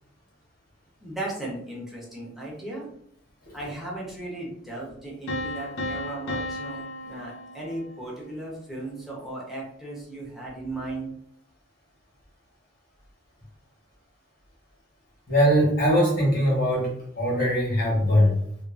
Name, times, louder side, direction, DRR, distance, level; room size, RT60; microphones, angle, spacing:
voice 1, 1.0-2.8 3.5-6.8 7.0-11.1, right 2 dB, ahead, -5 dB, 0.8 m, -36 dB
sound 1, 5.3-8.2, left 1 dB, 85° left, 0.6 m, -34 dB
voice 2, 15.3-16.9 17.2-18.3, equal, 55° left, -4 dB, 1.2 m, -21 dB
2.5 x 2.5 x 2.4 m, 0.67 s
head